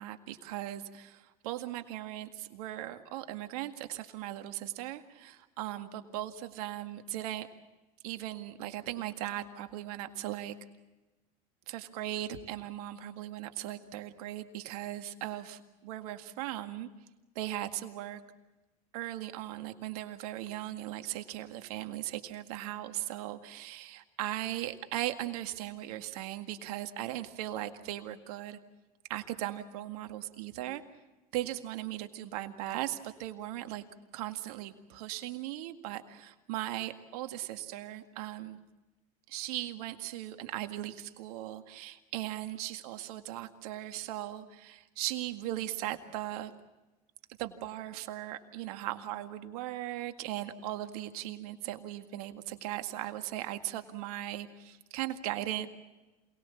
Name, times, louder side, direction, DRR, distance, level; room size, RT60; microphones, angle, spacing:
voice 1, 0.0-7.5 8.0-10.6 11.7-16.9 17.4-18.2 18.9-28.6 29.1-30.8 31.3-33.8 34.1-38.6 39.3-46.5 47.4-55.7, right 14 dB, 80° right, 7 dB, 2.0 m, -38 dB
27.5 x 20.0 x 7.2 m, 1.1 s
hypercardioid pair, 90°, 19 cm